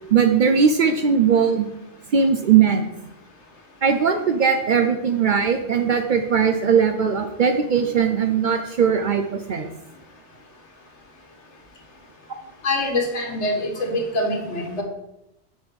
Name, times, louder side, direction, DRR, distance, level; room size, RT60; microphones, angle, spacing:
voice 1, 0.1-1.7 2.1-2.9 3.8-9.7, right 6 dB, 55° right, 6 dB, 0.6 m, -19 dB
voice 2, 12.6-14.8, left 1 dB, 80° left, 2 dB, 1.5 m, -24 dB
5.6 x 4.4 x 5.1 m, 0.86 s
omnidirectional pair, 1.2 m